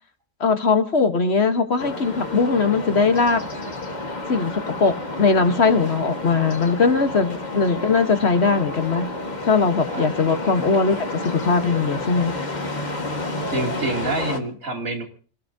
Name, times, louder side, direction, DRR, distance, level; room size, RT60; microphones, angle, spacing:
voice 1, 0.4-3.4 4.3-9.1 9.4-12.3, left 4 dB, 55° left, 8 dB, 1.5 m, -20 dB
sound 1, 1.8-14.4, left 2 dB, 35° left, 1.7 m, -30 dB
voice 2, 9.9-10.2 13.5-15.0, right 2 dB, 70° right, 1 dB, 3.2 m, -28 dB
27.0 x 17.0 x 2.8 m, 0.43 s
omnidirectional pair, 1.4 m